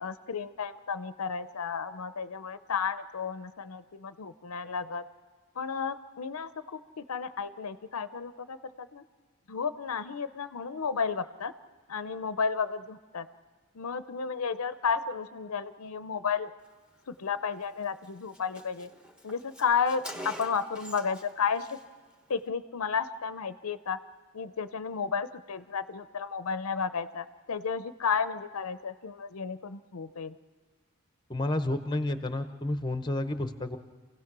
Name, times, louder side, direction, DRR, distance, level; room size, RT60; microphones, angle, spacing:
voice 1, 0.0-5.0 5.6-9.0 9.5-11.5 11.9-13.3 13.7-16.5 17.1-18.9 19.2-21.8 22.3-24.0 24.3-30.3, left 6 dB, 90° left, 12 dB, 0.7 m, -32 dB
Car, 17.6-17.8 18.0-18.1 18.3-21.3 21.6-21.8, equal, 5° right, 1.1 m, -44 dB
voice 2, 31.3-33.8, left 1 dB, 20° left, 9 dB, 0.8 m, -30 dB
28.0 x 16.5 x 6.0 m, 1.5 s
head